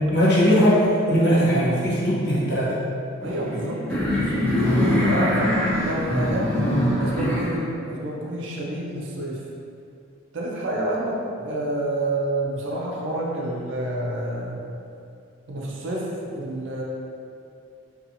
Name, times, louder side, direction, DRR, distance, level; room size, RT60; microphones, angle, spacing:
voice 1, 0.0-2.7, equal, 55° left, -8 dB, 0.7 m, -19 dB
sound 1, 3.2-7.6, left 1 dB, 10° left, 0.4 m, -23 dB
voice 2, 3.2-3.8 4.2-6.6 6.9-9.4 10.3-14.6 15.5-16.8, right 1 dB, 60° right, -3 dB, 0.4 m, -29 dB
2.7 x 2.3 x 2.5 m, 2.5 s
head